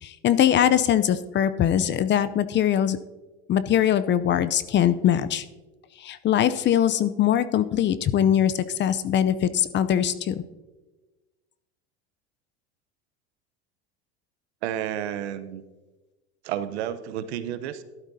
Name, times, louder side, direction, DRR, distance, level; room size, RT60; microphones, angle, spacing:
voice 1, 0.0-3.0 3.5-5.5 6.0-10.4, left 10 dB, 35° left, 14 dB, 0.6 m, -22 dB
voice 2, 14.6-15.6 16.4-17.8, right 10 dB, 80° right, 12 dB, 0.9 m, -31 dB
14.5 x 12.0 x 2.8 m, 1.2 s
hypercardioid pair, 90°, 32 cm